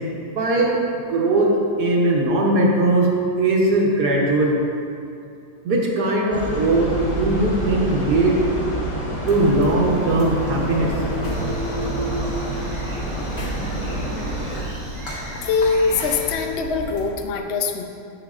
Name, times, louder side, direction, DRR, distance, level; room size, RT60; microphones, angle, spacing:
voice 1, 0.3-0.8 1.1-3.1 3.4-4.6 5.6-8.4 9.3-10.9, right 2 dB, 70° right, -2 dB, 1.6 m, -19 dB
sound 1, 6.3-14.6, right 1 dB, 20° left, 1.0 m, -27 dB
sound 2, 9.3-17.1, left 1 dB, 45° left, 1.4 m, -34 dB
sound 3, 11.3-16.5, right 1 dB, 90° right, 2.6 m, -41 dB
voice 2, 15.3-17.8, left 4 dB, 65° left, 4 dB, 0.6 m, -22 dB
10.5 x 7.4 x 2.5 m, 2.5 s
omnidirectional pair, 1.8 m